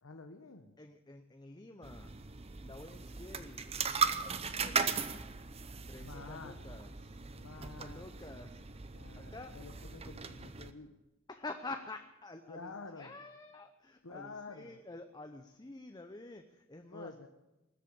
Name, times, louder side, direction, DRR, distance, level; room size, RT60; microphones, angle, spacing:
voice 1, 0.0-0.7 6.0-6.6 7.3-8.5 8.9-10.9 12.5-13.2 14.0-14.8 16.9-17.3, left 3 dB, 90° left, 6 dB, 1.1 m, -49 dB
voice 2, 0.8-2.1 2.6-5.1 5.9-7.2 7.6-8.6 9.2-9.5 11.3-17.1, left 2 dB, 20° left, 6 dB, 0.7 m, -49 dB
sound 1, 1.8-10.7, right 5 dB, 30° right, 0.8 m, -38 dB
20.0 x 8.2 x 8.6 m, 1.0 s
head